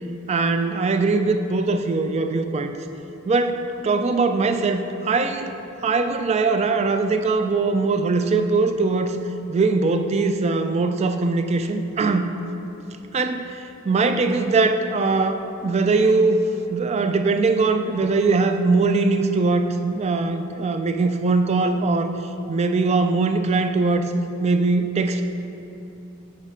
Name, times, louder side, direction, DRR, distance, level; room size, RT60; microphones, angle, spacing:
voice 1, 0.3-2.7 3.3-5.5 5.8-9.2 9.5-12.3 13.1-16.4 16.7-22.1 22.5-24.1 24.4-25.2, right 3 dB, 30° right, 8 dB, 0.3 m, -21 dB
6.5 x 4.8 x 5.0 m, 2.9 s
head